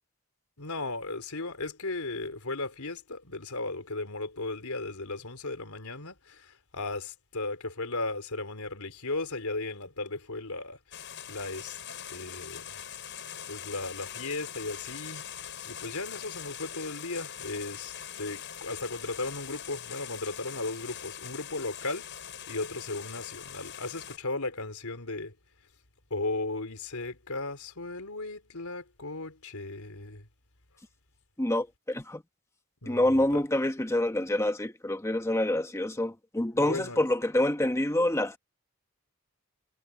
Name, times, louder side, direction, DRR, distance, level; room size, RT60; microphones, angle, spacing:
voice 1, 0.6-11.8 12.1-12.8 13.5-25.4 26.1-30.3 32.8-33.4 36.5-37.0, left 2 dB, 80° left, 3.9 m, -36 dB
sound 1, 10.9-24.2, left 9 dB, 55° left, 6.8 m, -42 dB
voice 2, 31.4-32.2 32.9-38.4, left 1 dB, 15° left, 1.2 m, -27 dB
head